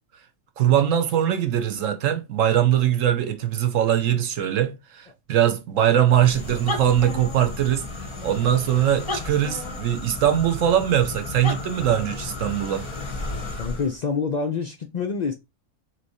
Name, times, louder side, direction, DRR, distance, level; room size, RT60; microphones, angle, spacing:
voice 1, 0.6-7.9 8.2-12.9, right 10 dB, 70° right, 1.1 m, -21 dB
sound 1, 6.1-14.0, left 2 dB, 30° left, 0.6 m, -33 dB
voice 2, 13.6-15.3, left 5 dB, 75° left, 0.4 m, -26 dB
3.7 x 3.1 x 4.1 m
omnidirectional pair, 1.4 m